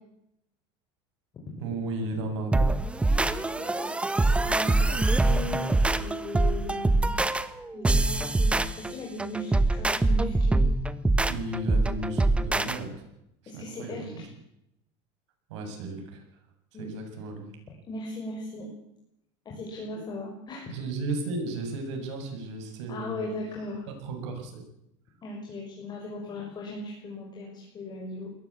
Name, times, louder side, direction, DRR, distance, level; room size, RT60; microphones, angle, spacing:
voice 1, 1.6-2.7 11.2-12.9 13.5-14.2 15.5-16.2 16.8-17.5 19.9-20.0 20.7-23.2 23.9-24.6, right 2 dB, 85° right, 3 dB, 7.8 m, -34 dB
sound 1, 2.5-12.8, right 2 dB, 10° right, 1.1 m, -24 dB
voice 2, 3.2-7.1 7.7-10.6 13.5-14.3 16.7-16.9 17.9-18.7 19.4-20.8 22.9-23.9 25.2-28.3, left 2 dB, 30° left, -2 dB, 6.3 m, -38 dB
21.5 x 17.5 x 8.6 m, 0.80 s
supercardioid pair, 140°, 15 cm